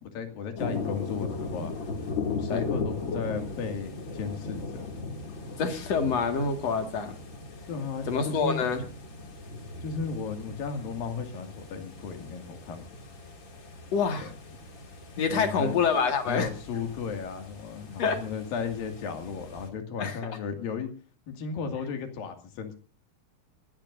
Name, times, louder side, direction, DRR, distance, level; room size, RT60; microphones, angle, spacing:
voice 1, 0.0-1.7 2.2-4.8 7.7-8.6 9.8-12.8 14.2-14.3 15.3-15.8 16.3-20.9 21.3-22.7, left 6 dB, 85° left, 6 dB, 4.0 m, -35 dB
sound 1, 0.6-19.7, left 3 dB, 35° left, 3.0 m, -38 dB
voice 2, 5.6-7.2 8.1-8.9 13.9-14.3 15.2-16.5 18.0-18.2 20.0-20.2, left 5 dB, 50° left, 6 dB, 2.9 m, -26 dB
22.5 x 17.5 x 2.6 m, 0.36 s
omnidirectional pair, 3.9 m